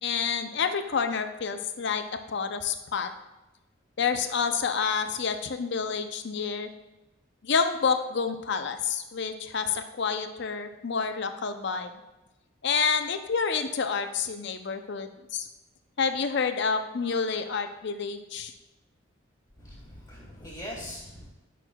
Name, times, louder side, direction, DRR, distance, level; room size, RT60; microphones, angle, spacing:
voice 1, 0.0-3.1 4.0-6.7 7.4-12.0 12.6-15.5 16.0-18.5, left 5 dB, 55° left, 8 dB, 0.5 m, -28 dB
voice 2, 19.6-21.3, equal, 20° left, -5 dB, 1.7 m, -41 dB
11.0 x 6.1 x 2.3 m, 1.0 s
head